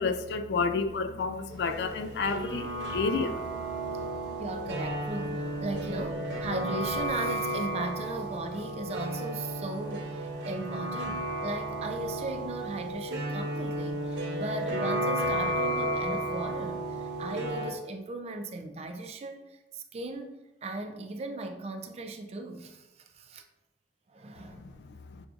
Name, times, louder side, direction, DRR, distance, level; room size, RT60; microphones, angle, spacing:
voice 1, 0.0-3.4, left 4 dB, 70° left, 0.3 m, -30 dB
sound 1, 1.5-17.7, right 1 dB, 85° right, 0.7 m, -33 dB
voice 2, 4.4-23.4 24.1-24.6, right 2 dB, 35° right, 0.3 m, -37 dB
6.0 x 2.5 x 2.4 m
head